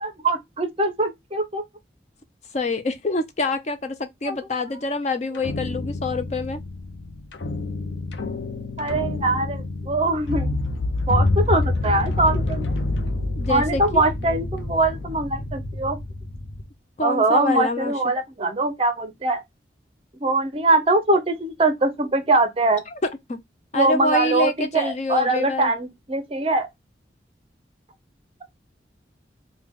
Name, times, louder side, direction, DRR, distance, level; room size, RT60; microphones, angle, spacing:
voice 1, 0.0-1.6 4.2-4.4 8.8-10.6 11.1-12.7 13.5-16.0 17.0-19.4 20.2-22.8 23.7-26.7, right 2 dB, 30° right, 0.6 m, -22 dB
voice 2, 2.5-6.6 13.4-14.0 17.0-17.9 23.3-23.4 23.7-25.7, left 2 dB, 40° left, 0.5 m, -26 dB
sound 1, 5.4-16.6, left 2 dB, 90° left, 0.6 m, -27 dB
3.3 x 2.2 x 3.5 m
head